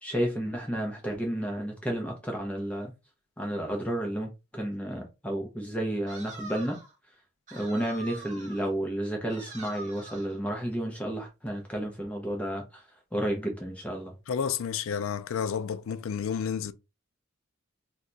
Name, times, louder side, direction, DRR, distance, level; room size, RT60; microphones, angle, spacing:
voice 1, 0.0-2.9 3.4-6.8 7.5-12.8 13.1-14.1, right 1 dB, 5° left, 0.6 m, -32 dB
sound 1, 6.1-7.0 7.5-8.7 9.3-10.4, right 2 dB, 40° right, 1.2 m, -45 dB
voice 2, 14.3-16.7, left 7 dB, 70° left, 0.4 m, -30 dB
2.8 x 2.2 x 3.8 m
head